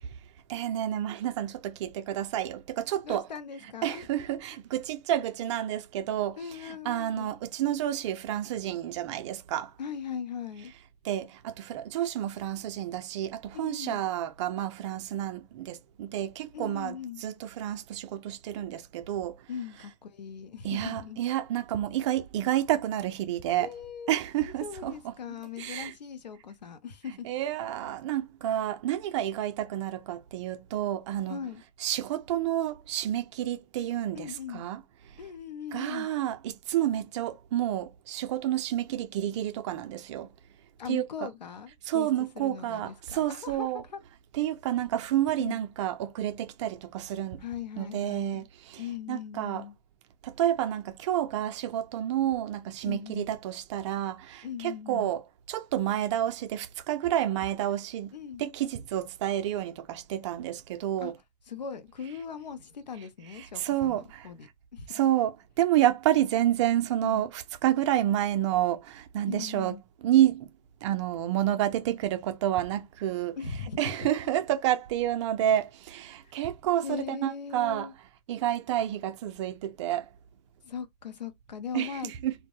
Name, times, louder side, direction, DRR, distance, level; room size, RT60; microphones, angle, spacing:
voice 1, 0.5-3.3 3.8-6.4 6.6-9.7 11.0-17.0 17.2-19.4 20.6-23.7 24.1-24.9 25.6-25.9 27.3-31.4 31.8-34.8 35.7-40.3 40.9-41.1 41.9-43.8 44.4-47.4 47.8-48.8 49.1-49.6 50.2-55.2 55.5-58.1 58.4-61.1 63.5-64.3 64.9-69.7 70.0-70.5 70.8-73.4 73.8-77.9 78.3-80.1 81.7-82.3, right 12 dB, 45° right, 0.4 m, -29 dB
voice 2, 3.0-4.1 6.4-7.3 9.8-10.7 13.5-14.0 16.5-17.2 19.5-21.2 23.5-27.3 31.3-31.6 34.1-34.6 35.2-36.1 40.8-44.0 45.4-45.6 47.4-48.5 48.8-49.8 52.8-53.3 54.4-55.1 58.1-58.4 61.0-61.1 61.5-65.1 67.0-67.3 69.3-69.8 73.4-73.9 76.8-77.9 80.6-82.1, left 7 dB, 90° left, 0.7 m, -39 dB
2.1 x 2.0 x 2.8 m
hypercardioid pair, 125°, 21 cm